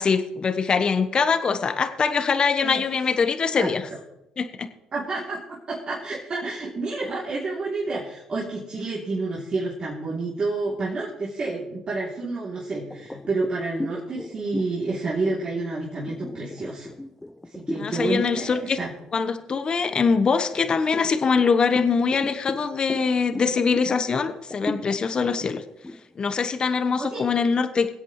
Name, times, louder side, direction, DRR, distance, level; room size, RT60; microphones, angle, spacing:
voice 1, 0.0-3.8 4.4-4.7 17.8-18.8 19.1-25.6 26.2-27.9, left 5 dB, 40° left, 9 dB, 1.1 m, -23 dB
voice 2, 4.9-16.9 17.5-18.9 27.0-27.3, right 3 dB, 45° right, -7 dB, 3.2 m, -29 dB
sound 1, 12.9-18.0 18.5-18.7 19.2-20.0 20.5-27.2, left 1 dB, 15° left, 0.7 m, -36 dB
23.5 x 8.2 x 3.3 m, 0.87 s
hypercardioid pair, 60°, 2 cm